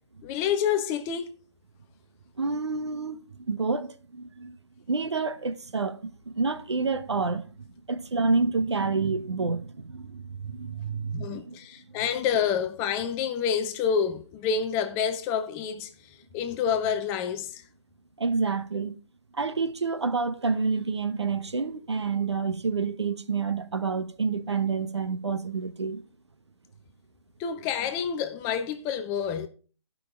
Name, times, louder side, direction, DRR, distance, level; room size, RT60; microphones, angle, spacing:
voice 1, 0.2-1.3 11.1-15.9 16.3-17.6 27.4-29.5, left 7 dB, 15° left, 0.6 m, -28 dB
voice 2, 2.4-4.6 4.9-11.6 18.2-19.0 19.3-26.0, right 4 dB, 70° right, 1.0 m, -28 dB
13.0 x 5.5 x 4.3 m
figure-of-eight pair, 135°, 15 cm